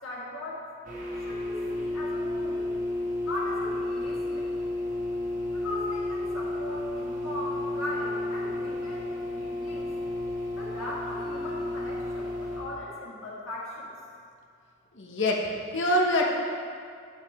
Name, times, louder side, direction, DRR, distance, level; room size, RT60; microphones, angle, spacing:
voice 1, 0.0-0.6 1.2-2.7 3.2-4.5 5.5-9.9 10.6-13.9, left 1 dB, 85° left, -6 dB, 2.0 m, -38 dB
sound 1, 0.8-12.6, left 1 dB, 40° right, 1.3 m, -32 dB
voice 2, 14.9-16.3, left 1 dB, 65° left, -1 dB, 1.1 m, -25 dB
9.3 x 5.5 x 4.3 m, 2.3 s
head